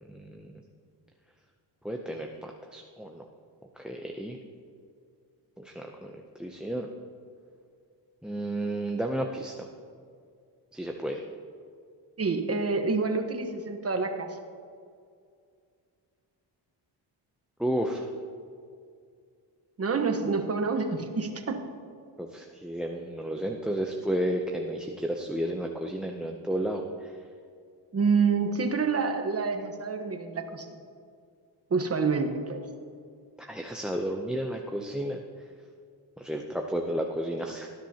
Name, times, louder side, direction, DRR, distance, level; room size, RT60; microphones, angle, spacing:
voice 1, 0.0-0.5 1.8-3.3 3.8-4.4 5.6-6.9 8.2-9.7 10.7-11.3 17.6-18.1 22.2-27.2 33.4-35.2 36.2-37.7, right 1 dB, ahead, 2 dB, 0.6 m, -32 dB
voice 2, 12.2-14.4 19.8-21.6 27.9-30.8 31.7-32.6, right 4 dB, 30° right, 5 dB, 1.2 m, -27 dB
18.0 x 10.5 x 2.9 m, 2.2 s
cardioid pair, 105°, 45 cm